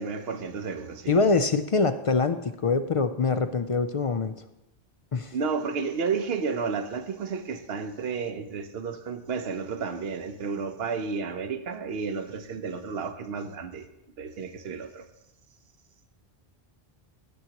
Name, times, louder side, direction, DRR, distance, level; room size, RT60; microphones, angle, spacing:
voice 1, 0.0-1.3 5.3-13.9 14.2-15.0, right 5 dB, 75° right, 8 dB, 1.0 m, -32 dB
voice 2, 1.1-4.3 5.1-5.3, left 4 dB, 50° left, 10 dB, 0.4 m, -24 dB
16.5 x 7.7 x 2.9 m, 0.89 s
omnidirectional pair, 1.1 m